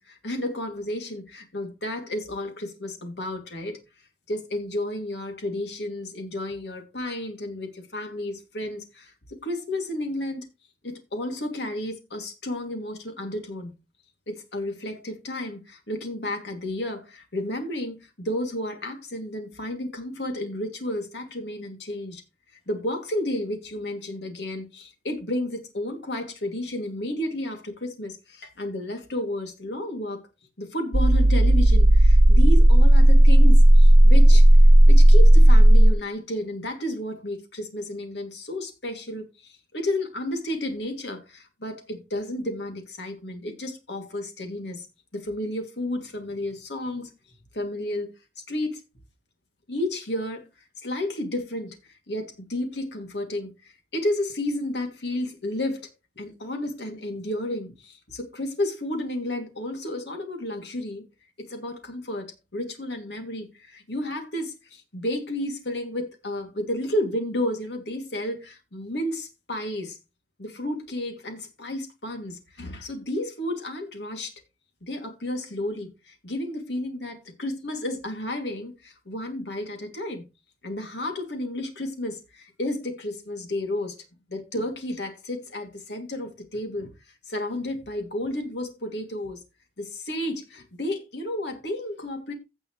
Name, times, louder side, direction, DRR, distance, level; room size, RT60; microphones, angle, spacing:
voice 1, 0.0-3.8 4.3-9.1 9.4-10.5 10.8-13.7 14.3-22.2 22.7-30.2 30.6-34.5 34.9-44.9 45.1-47.1 47.5-48.1 48.5-48.8 49.7-50.5 50.8-55.9 56.2-61.0 61.4-70.0 70.4-74.3 74.8-80.2 80.6-84.0 84.3-86.9 87.3-89.4 89.8-92.3, left 1 dB, 75° left, 2.6 m, -32 dB
sound 1, 30.9-35.9, right 1 dB, 80° right, 1.0 m, -12 dB
16.0 x 6.3 x 3.2 m
head